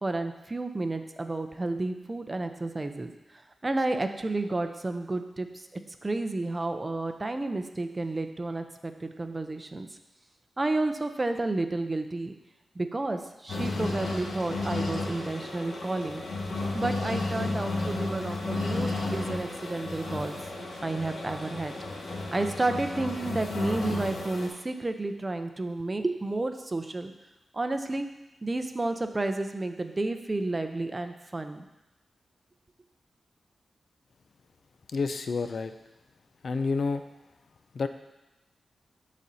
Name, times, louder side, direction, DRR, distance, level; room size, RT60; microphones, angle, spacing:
voice 1, 0.0-3.1 3.6-5.5 6.0-9.9 10.6-12.3 12.8-16.2 16.7-20.4 20.8-21.7 22.3-27.1 27.5-28.1 28.4-31.7, right 2 dB, 30° right, 7 dB, 0.6 m, -31 dB
sound 1, 13.5-24.5, left 2 dB, 90° left, 1.4 m, -33 dB
voice 2, 34.9-35.7 36.4-37.0 37.7-37.9, left 4 dB, 65° left, 9 dB, 0.4 m, -29 dB
12.5 x 4.2 x 2.7 m, 0.96 s
cardioid pair, 70°, 0 cm